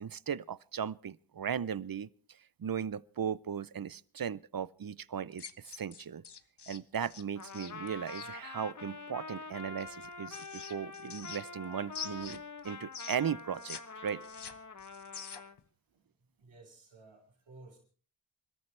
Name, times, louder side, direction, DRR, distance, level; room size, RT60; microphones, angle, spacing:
voice 1, 0.0-6.2 6.7-14.3, right 8 dB, 50° right, 0.7 m, -37 dB
sound 1, 5.3-8.3 9.8-11.6 11.9-13.8 14.1-15.6, left 6 dB, 60° left, 1.2 m, -45 dB
Trumpet, 7.3-15.6, left 3 dB, 40° left, 1.1 m, -46 dB
voice 2, 15.9-17.8, right 2 dB, 85° right, 5.6 m, -56 dB
27.0 x 14.0 x 3.3 m
wide cardioid pair, 75°, 47 cm